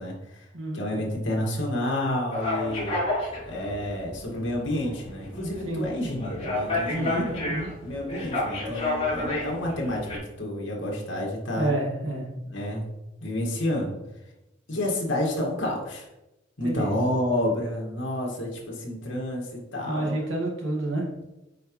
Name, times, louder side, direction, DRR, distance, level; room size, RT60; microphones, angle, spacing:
voice 1, 0.0-0.5 0.7-3.0 3.4-7.4 7.8-10.1 10.4-11.8 12.5-12.8 13.2-14.0 14.7-16.1 16.6-20.1, left 1 dB, 80° left, -2 dB, 2.1 m, -29 dB
sound 1, 2.3-10.2, left 2 dB, 35° left, 2.6 m, -31 dB
voice 2, 6.9-7.7 11.6-12.3 16.6-16.9 19.8-21.1, right 2 dB, 90° right, -2 dB, 2.1 m, -29 dB
9.2 x 4.8 x 3.2 m, 0.97 s
head